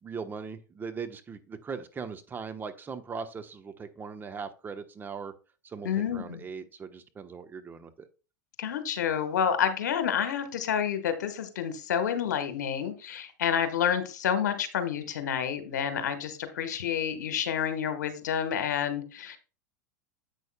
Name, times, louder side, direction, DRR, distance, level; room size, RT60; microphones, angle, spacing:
voice 1, 0.0-5.3 5.6-8.1, right 5 dB, 20° right, 8 dB, 1.1 m, -39 dB
voice 2, 5.8-6.4 8.6-19.4, left 8 dB, 70° left, 9 dB, 1.5 m, -29 dB
11.0 x 8.2 x 2.3 m, 0.33 s
hypercardioid pair, 95°, 10 cm